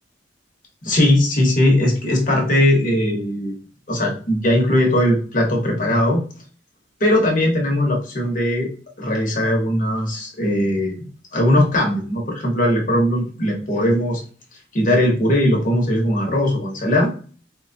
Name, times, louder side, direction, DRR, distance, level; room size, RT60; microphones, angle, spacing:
voice 1, 0.8-3.5 3.9-6.2 7.0-8.7 9.0-10.9 11.3-14.2 14.7-17.1, left 1 dB, 45° left, 0 dB, 1.0 m, -19 dB
4.4 x 2.2 x 2.6 m, 0.40 s
head